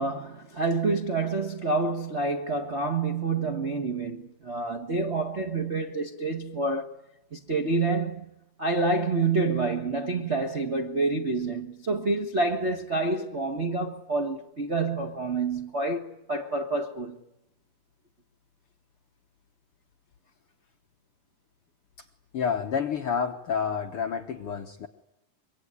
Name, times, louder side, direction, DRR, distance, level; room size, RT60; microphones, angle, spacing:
voice 1, 0.0-6.9 7.3-8.3 8.6-17.2, right 3 dB, 45° right, 0.9 m, -28 dB
voice 2, 22.3-24.9, left 6 dB, 60° left, 1.5 m, -29 dB
25.0 x 23.5 x 9.7 m
omnidirectional pair, 3.8 m